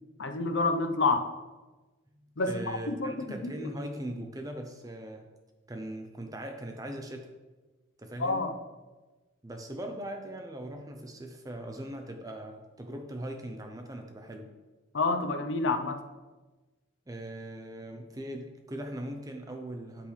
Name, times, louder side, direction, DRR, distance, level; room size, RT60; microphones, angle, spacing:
voice 1, 0.2-1.3 2.4-3.1 3.4-3.5 8.2-8.5 14.9-16.0, left 3 dB, 70° left, 7 dB, 0.7 m, -28 dB
voice 2, 2.1-5.3 5.7-7.3 8.0-8.5 9.4-14.5 17.1-20.1, right 1 dB, 20° right, 4 dB, 0.6 m, -40 dB
8.8 x 8.3 x 3.3 m, 1.2 s
head